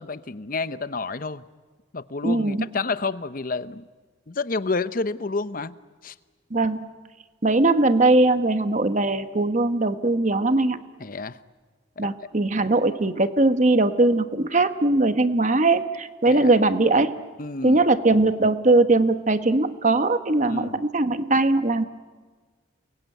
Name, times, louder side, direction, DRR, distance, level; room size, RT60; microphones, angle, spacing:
voice 1, 0.0-1.4 1.9-3.8 4.3-5.7 6.0-6.1 11.0-11.4 12.0-12.1 16.3-16.5 17.4-17.8 20.4-20.8, left 3 dB, 45° left, 14 dB, 0.8 m, -29 dB
voice 2, 2.2-2.7 6.5-6.8 7.4-10.8 12.0-17.1 17.6-21.8, right 2 dB, 35° right, 10 dB, 1.1 m, -20 dB
29.0 x 22.5 x 9.2 m, 1.4 s
head